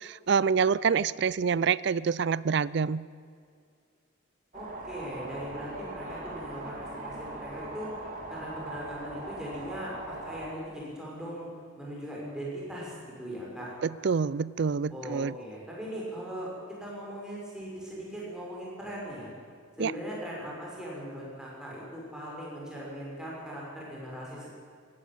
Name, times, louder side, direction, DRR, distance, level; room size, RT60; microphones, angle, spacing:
voice 1, 0.0-3.0 13.8-15.3 19.8-19.9, right 6 dB, 55° right, 20 dB, 0.4 m, -26 dB
voice 2, 4.5-7.9 8.3-11.5 11.8-13.7 14.9-16.5 16.8-19.3 19.8-24.6, equal, 5° right, -5 dB, 6.3 m, -39 dB
sound 1, 4.5-10.5, right 2 dB, 40° right, 3.3 m, -40 dB
17.0 x 17.0 x 9.0 m, 2.2 s
head